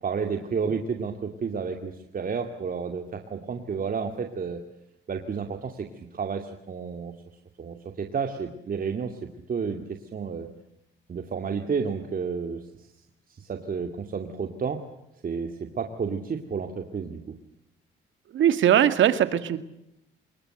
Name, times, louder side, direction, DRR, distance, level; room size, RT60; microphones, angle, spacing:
voice 1, 0.0-4.6 5.1-7.1 7.6-9.2 9.5-10.5 11.1-12.9 13.3-14.8 15.2-17.2, right 5 dB, 45° right, 5 dB, 2.4 m, -31 dB
voice 2, 18.3-19.6, right 10 dB, 75° right, 12 dB, 2.1 m, -20 dB
25.5 x 22.0 x 7.9 m, 0.83 s
cardioid pair, 90°, 20 cm